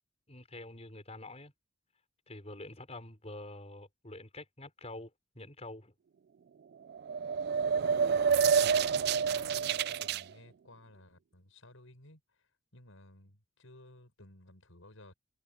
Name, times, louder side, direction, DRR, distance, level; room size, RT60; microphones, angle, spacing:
voice 1, 0.3-1.5 2.3-5.9, left 2 dB, 30° left, 5.7 m, -47 dB
sound 1, 6.9-10.2, right 6 dB, 50° right, 0.3 m, -28 dB
voice 2, 7.7-8.4 9.3-15.1, left 1 dB, 80° left, 6.5 m, -56 dB
head